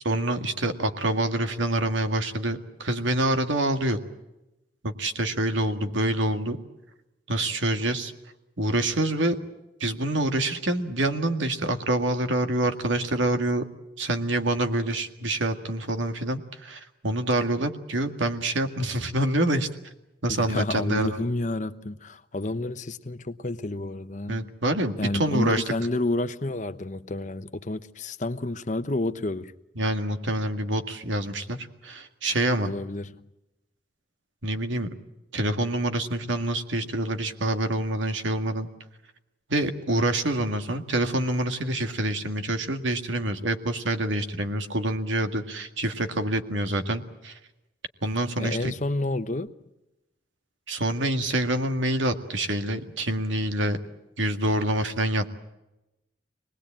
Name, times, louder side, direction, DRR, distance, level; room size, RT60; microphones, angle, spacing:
voice 1, 0.1-4.0 4.8-6.6 7.3-8.1 8.6-9.4 9.8-13.6 14.0-19.7 20.2-21.2 24.3-25.7 29.8-31.6 31.8-32.7 34.4-34.9 35.3-38.7 39.5-47.4 48.0-48.7 50.7-53.8 54.2-55.3, right 1 dB, 85° right, 2.0 m, -26 dB
voice 2, 20.3-24.5 25.0-29.5 32.6-33.2 48.4-49.5, left 2 dB, 40° left, 0.9 m, -30 dB
25.5 x 20.0 x 8.8 m
head